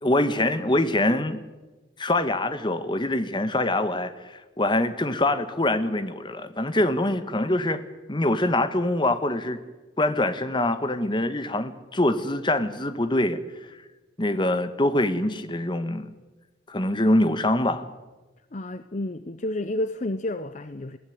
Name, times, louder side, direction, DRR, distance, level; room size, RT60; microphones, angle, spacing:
voice 1, 0.0-1.4 2.0-7.8 8.1-9.6 10.0-13.4 14.2-16.1 16.7-17.8, left 1 dB, 25° left, 1.3 m, -24 dB
voice 2, 18.5-21.0, left 1 dB, 40° left, 0.7 m, -30 dB
21.0 x 15.5 x 9.4 m
head